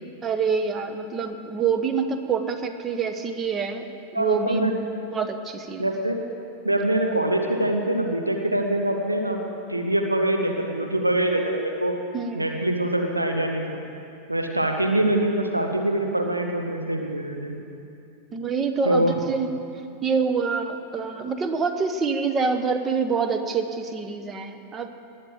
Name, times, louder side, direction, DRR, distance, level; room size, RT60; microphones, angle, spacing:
voice 1, 0.2-3.9 4.1-4.8 5.1-5.9 12.1-12.5 18.3-19.5 20.0-24.9, right 5 dB, 20° right, 7 dB, 1.0 m, -26 dB
voice 2, 4.1-4.7 5.8-6.2 6.6-9.4 9.7-11.9 12.3-13.8 14.3-17.6 18.8-19.1, right 1 dB, 85° right, 3 dB, 1.2 m, -24 dB
19.5 x 6.7 x 7.5 m, 2.6 s
figure-of-eight pair, 90°, 0 cm